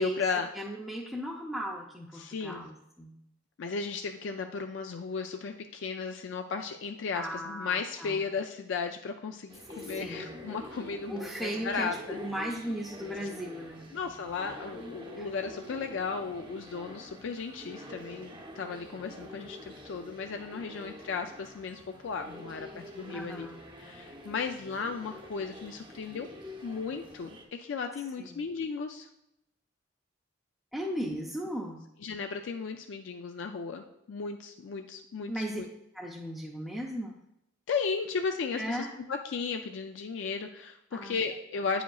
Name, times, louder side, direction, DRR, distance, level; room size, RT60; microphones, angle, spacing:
voice 1, 0.0-0.5 2.1-2.7 3.6-11.1 11.4-12.2 13.9-23.5 23.8-26.3 26.6-27.3 27.6-29.1 31.1-31.2 32.0-35.7 37.7-41.8, left 5 dB, 65° left, 5 dB, 0.4 m, -35 dB
voice 2, 0.5-3.1 7.1-8.2 9.9-10.3 11.1-13.9 15.2-15.3 23.1-23.6 28.2-28.4 30.7-31.8 35.3-35.6 35.9-37.2 38.6-38.9 40.9-41.1, equal, ahead, -4 dB, 0.5 m, -36 dB
sound 1, 9.5-27.4, equal, 25° right, 0.8 m, -47 dB
9.0 x 5.0 x 2.3 m, 0.82 s
head